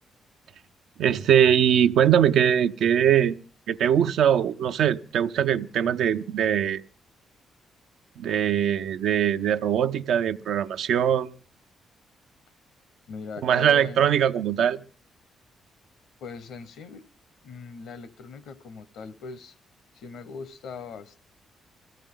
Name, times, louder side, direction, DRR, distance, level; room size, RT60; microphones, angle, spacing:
voice 1, 1.0-3.4 3.7-6.8 8.2-11.3 13.4-14.8, right 9 dB, 80° right, 0.7 m, -21 dB
voice 2, 13.1-14.0 16.2-17.1 17.4-19.5 19.9-21.2, left 5 dB, 80° left, 1.0 m, -40 dB
22.5 x 15.0 x 3.8 m
cardioid pair, 90°, 0 cm